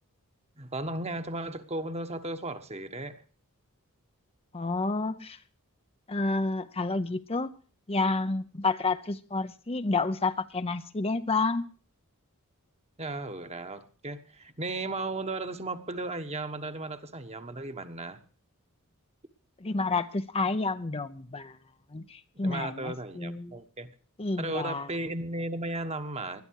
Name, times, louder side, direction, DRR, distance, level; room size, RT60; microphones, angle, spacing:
voice 1, 0.6-3.2 13.0-18.2 22.3-23.9 24.4-26.4, right 2 dB, 30° right, 8 dB, 1.3 m, -35 dB
voice 2, 4.5-5.4 6.1-7.5 7.9-11.7 19.6-21.6 21.9-23.6 24.2-24.9, left 3 dB, 25° left, 10 dB, 0.7 m, -30 dB
20.5 x 12.0 x 4.7 m, 0.40 s
head